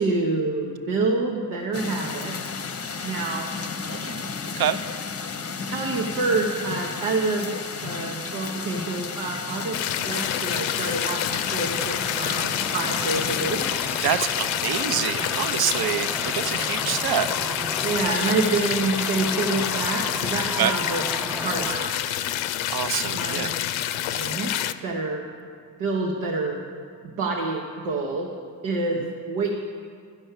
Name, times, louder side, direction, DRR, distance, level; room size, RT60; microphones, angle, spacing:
voice 1, 0.0-2.3 3.0-3.5 5.6-7.5 7.8-13.6 17.8-21.0 21.4-22.0 23.0-23.5 24.1-25.3 25.8-26.6 27.0-28.3 28.6-29.5, right 3 dB, 85° right, 0 dB, 1.0 m, -27 dB
sound 1, 1.7-13.7, left 5 dB, 30° left, 0.7 m, -33 dB
voice 2, 3.9-4.8 14.0-17.3 20.6-20.7 22.7-23.5 29.0-29.1, right 9 dB, 50° right, 11 dB, 0.7 m, -27 dB
sound 2, 9.7-24.7, left 12 dB, 80° left, 0.6 m, -28 dB
sound 3, 10.2-21.7, right 1 dB, 5° right, 0.4 m, -35 dB
11.5 x 5.4 x 8.0 m, 2.1 s
supercardioid pair, 50°, 47 cm